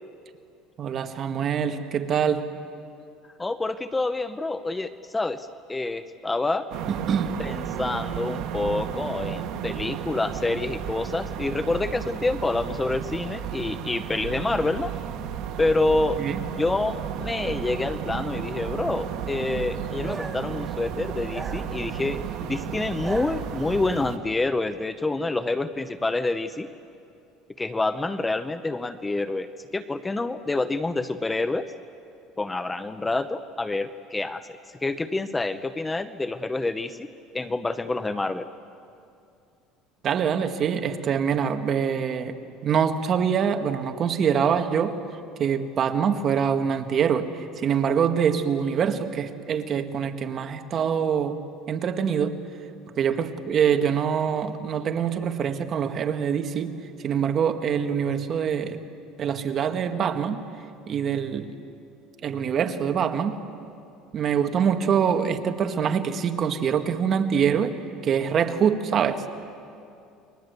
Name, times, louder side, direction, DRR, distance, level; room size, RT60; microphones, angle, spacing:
voice 1, 0.8-2.5 6.9-7.3 16.2-16.4 40.0-42.3 42.6-45.0 45.4-47.3 47.6-51.4 51.7-52.4 53.0-56.7 57.0-58.8 59.2-60.4 60.9-61.5 62.2-63.4 64.1-67.8 68.0-69.3, right 7 dB, 40° right, 7 dB, 1.7 m, -24 dB
voice 2, 3.4-6.7 7.4-14.9 15.6-16.2 16.6-26.7 27.6-31.7 32.4-34.5 34.8-37.1 37.3-38.5, left 2 dB, 15° left, 11 dB, 0.8 m, -27 dB
sound 1, 6.7-24.2, right 9 dB, 65° right, 1.8 m, -33 dB
sound 2, 20.0-20.6 21.3-22.2 22.8-23.9, right 3 dB, 15° right, 1.7 m, -39 dB
30.0 x 22.5 x 8.2 m, 2.5 s
cardioid pair, 130°, 0 cm